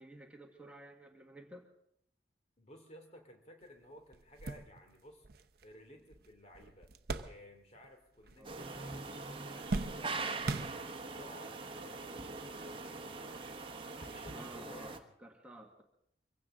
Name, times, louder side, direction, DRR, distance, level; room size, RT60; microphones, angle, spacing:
voice 1, 0.0-1.7 8.4-8.6 14.3-14.9 15.2-15.8, right 1 dB, 5° right, 1 dB, 1.5 m, -52 dB
voice 2, 2.6-5.3 5.6-6.9 7.2-10.4 11.0-13.5 13.9-15.1, left 1 dB, 40° left, 4 dB, 2.6 m, -56 dB
sound 1, 3.6-3.7 4.1-7.9 8.2-8.9 9.2-11.3 12.0-12.1 13.4-13.6, right 3 dB, 60° right, 0.7 m, -41 dB
sound 2, 8.4-15.0, right 3 dB, 30° right, 1.2 m, -43 dB
sound 3, 8.6-14.6, right 5 dB, 85° right, 1.0 m, -54 dB
24.0 x 16.0 x 3.7 m, 0.75 s
head